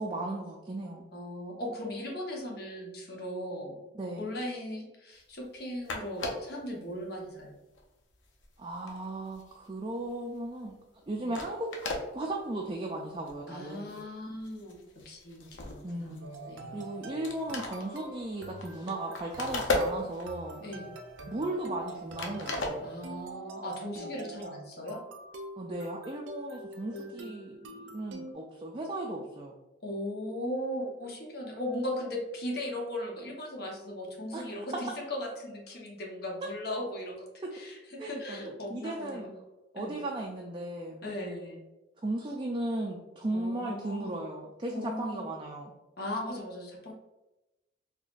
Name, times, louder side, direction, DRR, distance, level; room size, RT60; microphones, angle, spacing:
voice 1, 0.0-1.1 4.0-4.3 8.6-10.7 11.1-11.7 12.1-14.0 15.8-16.3 16.7-20.7 21.3-22.9 24.0-24.1 25.6-29.5 34.3-34.4 36.4-36.5 38.0-39.3 39.7-41.1 42.0-45.7, right 1 dB, 25° right, -1 dB, 0.3 m, -36 dB
voice 2, 1.1-3.8 4.2-7.6 11.2-11.3 13.5-16.7 20.6-20.9 22.8-25.0 26.9-27.3 29.8-39.3 39.7-40.0 41.0-41.6 43.3-44.2 44.7-45.3 46.0-46.9, left 1 dB, 55° left, -1 dB, 0.9 m, -38 dB
sound 1, 5.6-5.7 5.8-6.6 7.2-7.4 7.7-10.1 10.5-10.7 11.0-11.1 11.3-12.0 12.7-12.8 13.1-13.4 13.7-14.1 14.4-16.6 17.0-17.1 17.2-20.4 20.9-21.9 22.1-23.3, left 2 dB, 80° left, 0.6 m, -36 dB
sound 2, 16.2-28.3, right 2 dB, 80° right, 0.5 m, -45 dB
4.0 x 2.9 x 2.4 m, 0.98 s
head